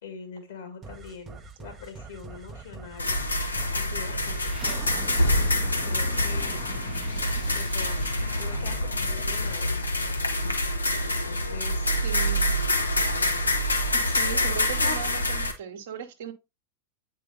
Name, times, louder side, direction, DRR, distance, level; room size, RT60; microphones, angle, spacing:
voice 1, 0.0-3.2 3.7-5.0 5.7-6.7 7.5-9.9 11.0-12.0 12.3-12.4, left 6 dB, 60° left, 2.0 m, -43 dB
sound 1, 0.8-10.1, right 5 dB, 20° right, 0.7 m, -43 dB
sound 2, 3.0-15.5, left 1 dB, 80° left, 0.9 m, -26 dB
voice 2, 12.0-12.4 13.9-16.3, right 8 dB, 55° right, 1.0 m, -38 dB
8.4 x 4.7 x 2.6 m
figure-of-eight pair, 90°, 0 cm